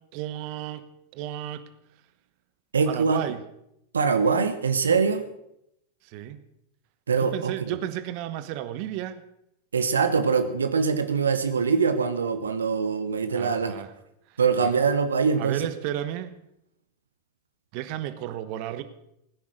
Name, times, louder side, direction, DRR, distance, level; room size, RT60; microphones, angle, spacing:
voice 1, 0.1-0.8 1.1-1.6 2.9-3.4 6.0-6.4 7.2-9.2 13.3-13.9 14.6-14.7 15.4-16.3 17.7-18.8, right 12 dB, 50° right, 13 dB, 1.1 m, -33 dB
voice 2, 2.7-3.2 3.9-5.3 7.1-7.8 9.7-13.7 14.4-15.7, right 5 dB, 80° right, 10 dB, 1.0 m, -23 dB
17.5 x 10.0 x 6.5 m, 0.81 s
figure-of-eight pair, 90°, 0 cm